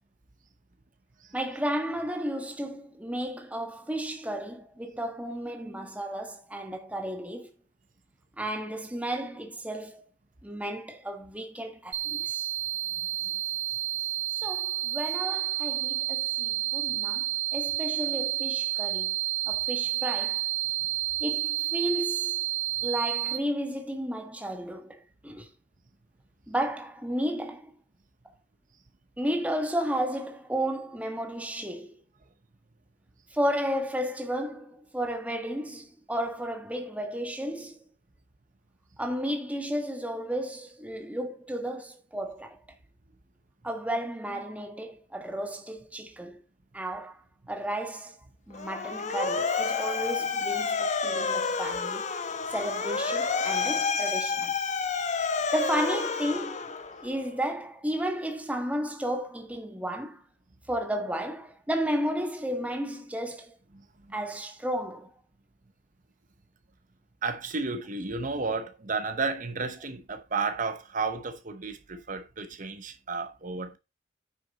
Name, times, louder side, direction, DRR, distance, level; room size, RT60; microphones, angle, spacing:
voice 1, 1.3-7.5 8.4-10.0 10.4-12.5 14.3-17.3 17.5-19.1 19.5-20.4 21.2-22.4 22.8-25.5 26.5-27.7 29.2-32.0 33.3-37.8 39.0-42.6 43.6-46.4 46.7-47.2 47.5-48.1 48.5-52.1 52.5-54.5 55.5-56.7 57.0-60.2 60.7-63.5 64.1-65.1, equal, 5° right, 1.5 m, -33 dB
sound 1, 11.9-23.4, right 15 dB, 65° right, 2.6 m, -30 dB
Motor vehicle (road) / Siren, 48.5-57.1, left 5 dB, 40° left, 1.0 m, -29 dB
voice 2, 67.2-73.8, right 4 dB, 40° right, 1.0 m, -32 dB
9.5 x 6.1 x 4.1 m
head